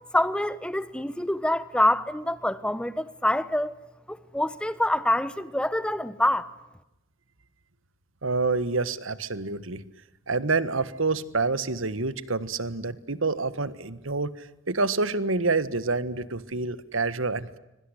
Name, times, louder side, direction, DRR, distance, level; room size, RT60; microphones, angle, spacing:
voice 1, 0.1-3.7 4.1-6.5, left 1 dB, 5° left, 1.0 m, -26 dB
voice 2, 8.2-9.8 10.3-17.6, right 3 dB, 70° right, 1.5 m, -27 dB
25.5 x 23.5 x 10.0 m
head